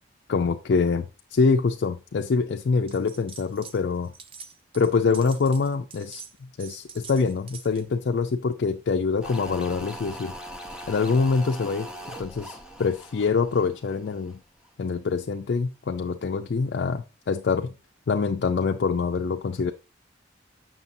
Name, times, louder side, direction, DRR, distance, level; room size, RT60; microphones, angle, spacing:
voice 1, 0.3-4.1 4.7-6.2 6.6-10.3 10.9-11.9 12.2-14.4 14.8-17.7 18.1-19.7, left 4 dB, 60° left, 0.4 m, -25 dB
sound 1, 2.9-3.8 4.0-7.9, right 6 dB, 30° right, 0.4 m, -45 dB
sound 2, 9.2-14.4 14.6-14.7, equal, 5° right, 0.8 m, -41 dB
7.1 x 6.0 x 2.6 m
head